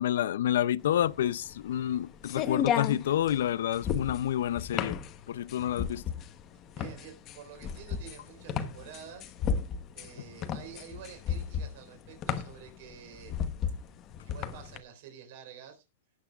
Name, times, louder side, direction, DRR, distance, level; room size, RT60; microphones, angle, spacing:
voice 1, 0.0-5.0 5.3-6.0, left 11 dB, 85° left, 0.5 m, -29 dB
sound 1, 0.9-14.8, left 8 dB, 25° left, 1.0 m, -34 dB
voice 2, 6.7-9.3 9.9-13.3 14.2-15.8, right 8 dB, 50° right, 4.1 m, -49 dB
19.0 x 8.2 x 2.4 m
supercardioid pair, 175°, 0 cm